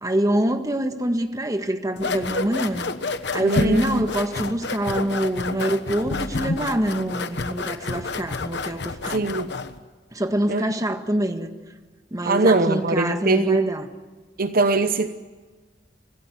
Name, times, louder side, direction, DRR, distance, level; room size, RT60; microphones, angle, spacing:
voice 1, 0.0-2.9 3.3-9.2 10.1-11.5 12.1-13.9, right 1 dB, 20° right, 7 dB, 1.6 m, -25 dB
Mysounds LG-FR Mathieu-kit and scissors, 2.0-9.8, left 3 dB, 70° left, 1.3 m, -29 dB
voice 2, 3.4-4.0 9.1-9.5 10.5-10.6 12.2-13.7 14.4-15.1, right 3 dB, 55° right, 10 dB, 0.9 m, -22 dB
25.5 x 16.5 x 9.6 m, 1.3 s
head